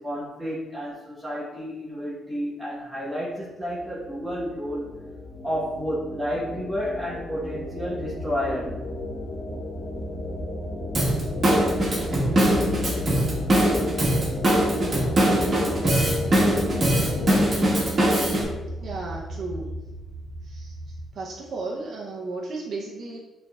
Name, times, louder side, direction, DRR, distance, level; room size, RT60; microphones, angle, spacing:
voice 1, 0.0-4.9 5.4-8.8, equal, 5° right, -8 dB, 1.0 m, -31 dB
sound 1, 3.7-17.5, left 2 dB, 50° left, 0.9 m, -34 dB
sound 2, 7.4-21.1, equal, 75° right, 1.1 m, -38 dB
Drum kit / Drum, 10.9-18.4, right 1 dB, 40° right, 1.3 m, -22 dB
voice 2, 18.8-19.7 20.4-20.7 21.1-23.2, right 3 dB, 55° right, -2 dB, 0.6 m, -34 dB
6.4 x 3.3 x 2.3 m, 1.2 s
cardioid pair, 90°, 0 cm